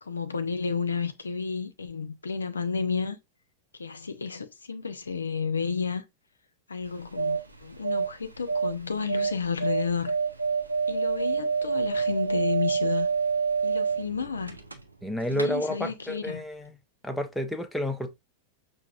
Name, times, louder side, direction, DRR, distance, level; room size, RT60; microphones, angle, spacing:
voice 1, 0.0-3.2 3.8-6.0 6.7-10.2 10.9-13.1 13.6-14.6 15.3-16.4, left 5 dB, 75° left, 0.5 m, -31 dB
sound 1, 6.8-15.0 15.3-15.5, right 5 dB, 85° right, 0.6 m, -28 dB
voice 2, 15.0-16.8 17.0-18.2, equal, 5° left, 0.6 m, -30 dB
5.8 x 2.6 x 2.4 m
figure-of-eight pair, 90°, 0 cm